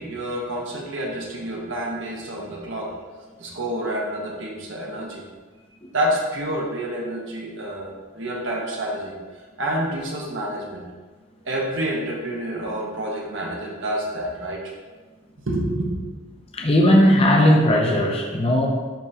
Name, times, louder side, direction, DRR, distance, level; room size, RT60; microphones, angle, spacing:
voice 1, 0.0-2.9 3.4-5.2 5.9-9.1 9.6-10.8 11.4-14.6 15.4-15.9, right 1 dB, 60° right, -1 dB, 1.2 m, -28 dB
voice 2, 16.5-18.7, left 1 dB, 25° left, 0 dB, 0.7 m, -17 dB
10.5 x 3.7 x 2.8 m, 1.3 s
head